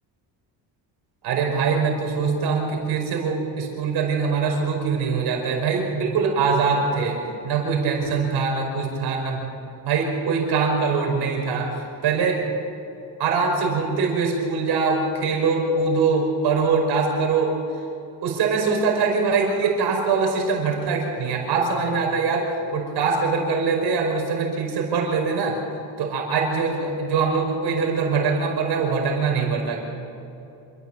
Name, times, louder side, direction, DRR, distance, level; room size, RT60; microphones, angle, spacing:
voice 1, 1.2-9.4 9.8-12.4 13.2-17.6 18.2-25.6 26.0-29.8, right 4 dB, 65° right, 1 dB, 5.2 m, -23 dB
27.0 x 14.0 x 7.5 m, 2.8 s
cardioid pair, 115°, 42 cm